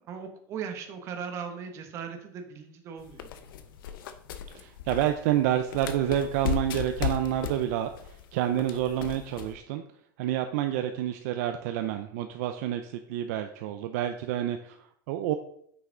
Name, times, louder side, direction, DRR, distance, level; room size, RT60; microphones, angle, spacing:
voice 1, 0.0-3.5, right 7 dB, 25° right, 5 dB, 1.1 m, -38 dB
sound 1, 3.0-9.6, left 10 dB, 85° left, 0.8 m, -36 dB
voice 2, 4.5-9.8 10.2-15.3, right 11 dB, 50° right, 7 dB, 0.5 m, -29 dB
9.5 x 5.8 x 3.9 m, 0.69 s
supercardioid pair, 175°, 11 cm